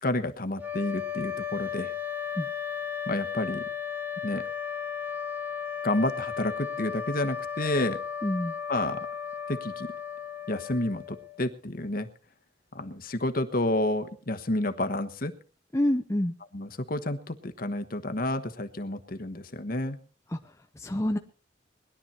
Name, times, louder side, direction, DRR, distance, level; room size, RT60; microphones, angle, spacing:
voice 1, 0.0-1.9 3.1-3.6 4.2-4.4 5.8-8.0 8.7-9.1 9.5-9.9 10.5-12.1 12.7-15.3 16.5-20.0, left 1 dB, 50° left, 8 dB, 1.2 m, -30 dB
sound 1, 0.6-11.5, left 7 dB, 10° right, 1.1 m, -35 dB
voice 2, 8.2-8.5 15.7-16.3 20.3-20.4 20.8-21.2, left 1 dB, 15° left, 4 dB, 0.8 m, -27 dB
20.0 x 11.5 x 4.3 m, 0.40 s
head